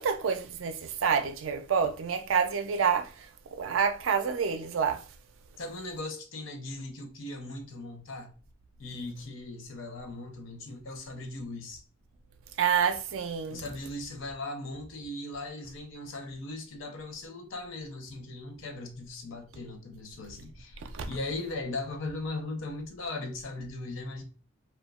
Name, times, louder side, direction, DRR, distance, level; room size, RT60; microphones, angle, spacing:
voice 1, 0.0-3.3 3.5-5.0 12.6-13.6 20.8-21.1, right 6 dB, 75° right, 0.4 m, -28 dB
voice 2, 5.6-8.3 8.8-11.8 13.5-20.8 21.1-24.2, left 2 dB, 70° left, 0.6 m, -38 dB
2.8 x 2.2 x 2.3 m
head